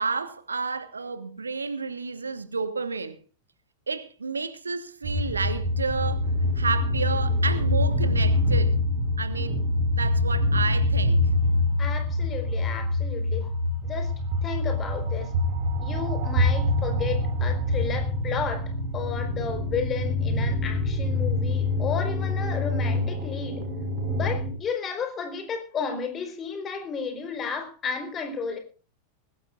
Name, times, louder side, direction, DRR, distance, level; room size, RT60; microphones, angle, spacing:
voice 1, 0.0-3.2 3.9-8.8 9.2-9.6 9.9-11.2, right 4 dB, 75° right, 1.4 m, -31 dB
sound 1, 5.0-24.5, left 1 dB, 50° right, 5.5 m, -25 dB
voice 2, 11.8-13.5 13.8-14.1 14.4-15.3 15.8-23.7 24.1-28.6, left 6 dB, 25° left, 4.3 m, -33 dB
21.0 x 17.0 x 2.5 m
figure-of-eight pair, 90°, 0 cm